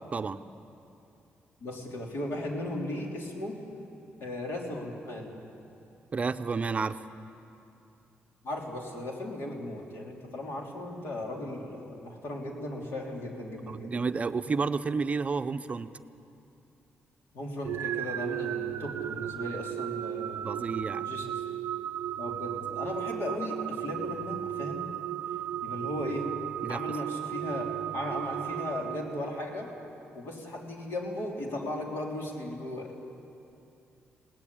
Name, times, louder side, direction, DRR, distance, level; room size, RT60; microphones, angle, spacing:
voice 1, 1.6-3.6 4.2-5.3 8.4-14.1 17.3-20.7 21.1-21.4 22.2-24.9 25.6-26.4 26.7-29.7 30.1-33.0, left 1 dB, 70° left, 0 dB, 3.5 m, -36 dB
voice 2, 6.1-7.0 13.6-15.9 20.4-21.0 26.6-27.0, right 4 dB, 35° right, 10 dB, 0.6 m, -31 dB
sound 1, 17.6-29.6, right 12 dB, 85° right, 0.5 m, -35 dB
21.0 x 17.5 x 8.6 m, 2.7 s
cardioid pair, 110°, 4 cm